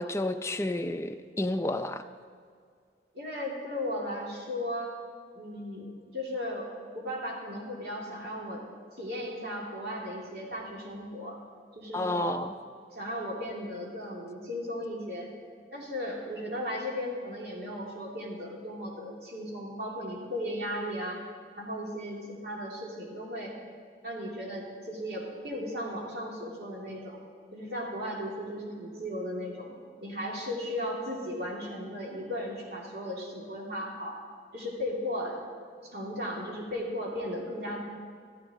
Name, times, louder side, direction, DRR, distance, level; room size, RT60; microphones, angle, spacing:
voice 1, 0.0-2.0 11.9-12.5, left 2 dB, 15° left, 7 dB, 0.5 m, -30 dB
voice 2, 3.1-4.9 5.3-8.6 8.9-11.4 11.7-12.3 12.9-15.3 15.7-21.2 21.6-23.5 24.0-27.2 27.5-29.7 30.0-34.2 34.5-35.4 35.8-37.9, equal, 60° right, -3 dB, 2.8 m, -36 dB
14.0 x 13.0 x 3.6 m, 2.1 s
head